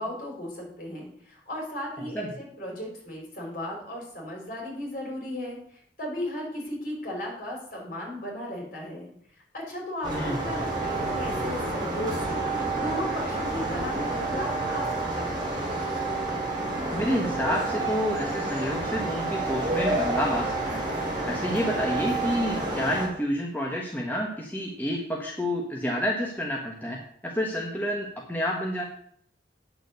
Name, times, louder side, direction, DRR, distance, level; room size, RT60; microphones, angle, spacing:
voice 1, 0.0-9.1 9.5-12.4 12.7-15.5, left 1 dB, 50° left, -1 dB, 4.6 m, -36 dB
voice 2, 2.0-2.3 10.1-10.4 16.9-20.8 21.2-28.8, equal, 10° left, -1 dB, 1.2 m, -29 dB
sound 1, 10.0-23.1, right 2 dB, 25° right, 3.2 m, -29 dB
8.9 x 6.7 x 6.7 m, 0.63 s
head